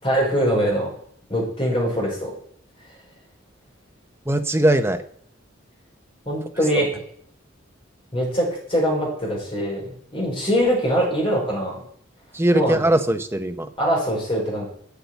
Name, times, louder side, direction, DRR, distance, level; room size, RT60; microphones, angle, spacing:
voice 1, 0.0-0.9 1.3-2.3 6.3-6.9 8.1-9.8 10.1-11.7 12.5-12.8 13.8-14.6, equal, 25° left, -2 dB, 4.7 m, -22 dB
voice 2, 4.3-5.0 12.3-13.7, right 1 dB, 10° right, 7 dB, 0.7 m, -20 dB
8.1 x 7.2 x 8.1 m, 0.63 s
head